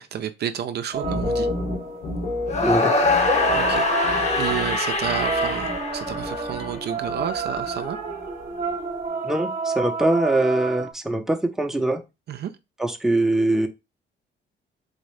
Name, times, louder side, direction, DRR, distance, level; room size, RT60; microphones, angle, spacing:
voice 1, 0.0-1.5 3.5-3.9 4.4-8.0 12.3-12.5, right 9 dB, 55° right, 0.4 m, -30 dB
sound 1, 0.9-6.8 7.0-7.7 8.0-8.5, left 2 dB, 85° left, 2.2 m, -32 dB
sound 2, 0.9-2.3 3.2-10.9, right 4 dB, 35° right, 0.9 m, -29 dB
sound 3, 2.5-6.6, left 3 dB, 35° left, 0.8 m, -23 dB
voice 2, 2.6-2.9 9.2-12.0 12.8-13.7, right 2 dB, ahead, 0.6 m, -22 dB
4.0 x 2.6 x 3.2 m
cardioid pair, 90°, 20 cm